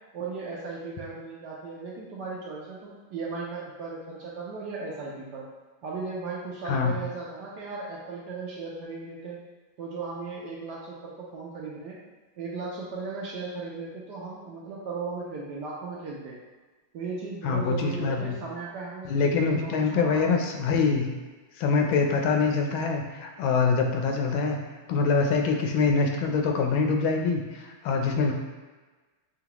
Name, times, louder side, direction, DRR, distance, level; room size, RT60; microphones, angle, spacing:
voice 1, 0.1-5.5 5.8-9.4 9.8-12.0 12.4-16.3 16.9-20.3, right 4 dB, 70° right, -4 dB, 1.0 m, -36 dB
voice 2, 6.7-7.0 17.4-18.4 19.0-21.1 21.6-24.6 24.9-28.3, left 4 dB, 80° left, 3 dB, 1.4 m, -24 dB
5.7 x 2.3 x 2.9 m, 1.3 s
omnidirectional pair, 2.2 m